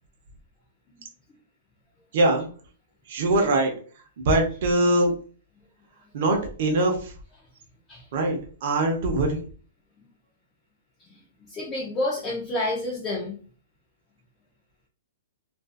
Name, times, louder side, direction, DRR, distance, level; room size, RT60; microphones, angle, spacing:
voice 1, 2.1-2.5 3.1-3.8 4.2-5.2 6.1-7.1 8.1-9.4, right 2 dB, 50° right, 2 dB, 0.7 m, -22 dB
voice 2, 11.4-13.4, left 2 dB, 15° left, -3 dB, 0.4 m, -29 dB
2.4 x 2.4 x 2.4 m, 0.41 s
hypercardioid pair, 165°, 0 cm